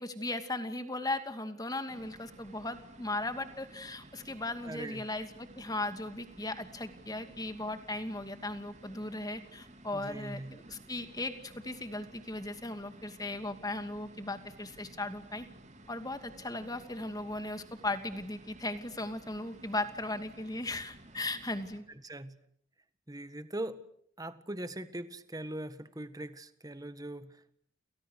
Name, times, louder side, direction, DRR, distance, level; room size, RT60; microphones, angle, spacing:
voice 1, 0.0-5.3 5.6-15.5 15.9-21.8, left 2 dB, 20° left, 9 dB, 2.5 m, -37 dB
sound 1, 1.9-21.8, right 1 dB, 35° right, 3.2 m, -54 dB
voice 2, 4.6-5.1 9.9-10.6 21.9-22.4 23.1-23.9 24.2-27.5, right 1 dB, 20° right, 12 dB, 1.6 m, -41 dB
29.5 x 29.5 x 6.6 m, 0.65 s
head